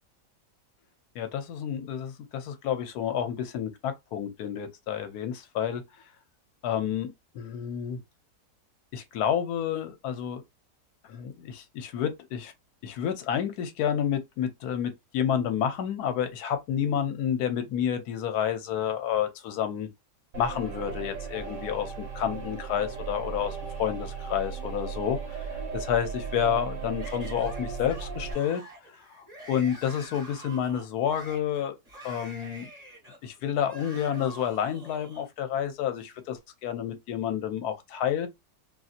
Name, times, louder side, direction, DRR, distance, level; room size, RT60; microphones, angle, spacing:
voice 1, 1.1-5.8 6.6-7.1 7.3-8.0 8.9-10.4 11.1-12.5 12.8-19.9 20.4-28.6 28.9-31.7 32.0-32.7 33.2-38.3, left 9 dB, 70° left, 1.1 m, -30 dB
sound 1, 20.3-28.3, right 6 dB, 55° right, 1.3 m, -36 dB
Yell / Screaming, 27.0-35.3, right 1 dB, 25° right, 1.0 m, -47 dB
2.8 x 2.6 x 2.4 m
omnidirectional pair, 1.9 m